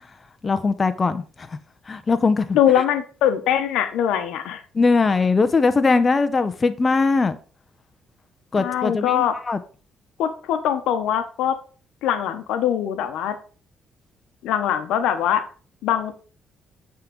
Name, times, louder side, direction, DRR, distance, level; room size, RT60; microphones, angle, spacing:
voice 1, 0.4-1.2 1.9-2.4 4.7-7.4 8.5-9.6, left 4 dB, 35° left, 0.6 m, -20 dB
voice 2, 2.5-4.6 8.6-9.4 10.2-11.6 12.0-13.4 14.4-15.4 15.8-16.1, left 10 dB, 90° left, 0.9 m, -22 dB
8.8 x 3.7 x 5.1 m
cardioid pair, 90°, 0 cm